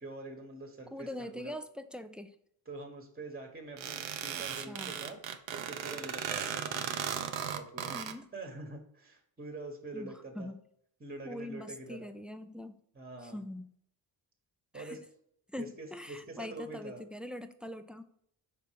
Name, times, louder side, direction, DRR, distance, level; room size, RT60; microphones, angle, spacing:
voice 1, 0.0-1.5 2.7-5.2 5.5-10.5 11.0-12.0 12.9-13.4 14.7-15.0 15.6-17.0, right 2 dB, 20° right, 4 dB, 1.2 m, -45 dB
voice 2, 0.9-2.4 4.4-5.0 7.9-8.3 9.9-10.6 11.2-12.8 13.2-13.7 14.7-15.0 15.5-18.0, left 1 dB, ahead, 9 dB, 0.3 m, -43 dB
sound 1, 3.8-8.1, right 8 dB, 80° right, 0.7 m, -36 dB
5.4 x 4.0 x 4.6 m, 0.69 s
cardioid pair, 85°, 44 cm